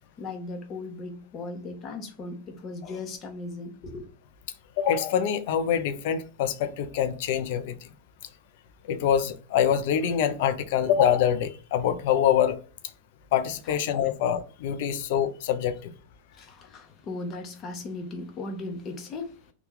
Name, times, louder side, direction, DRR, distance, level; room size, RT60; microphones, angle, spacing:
voice 1, 0.2-4.1 13.6-13.8 16.4-19.3, left 2 dB, 35° left, 0.8 m, -37 dB
voice 2, 4.8-7.8 8.9-12.6 13.3-15.9, left 9 dB, 65° left, 0.5 m, -25 dB
2.9 x 2.3 x 3.6 m
hypercardioid pair, 120°, 0 cm